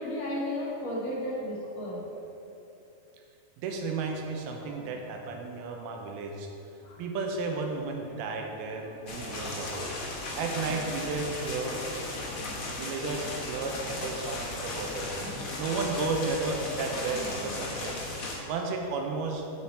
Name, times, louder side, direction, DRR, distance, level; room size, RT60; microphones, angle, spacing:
voice 1, 0.0-2.0 4.6-5.0 6.8-7.1 8.1-8.3 8.5-9.8 11.6-13.0 15.2-15.8 16.9-17.5, left 1 dB, 50° left, -6 dB, 1.7 m, -38 dB
voice 2, 3.6-6.5 7.0-9.9 10.4-11.9 12.7-15.1 15.6-17.9 18.5-19.5, right 3 dB, 85° right, 2 dB, 2.7 m, -33 dB
sound 1, 9.1-18.3, left 2 dB, 85° left, 1.1 m, -36 dB
8.3 x 6.0 x 4.2 m, 2.8 s
omnidirectional pair, 4.3 m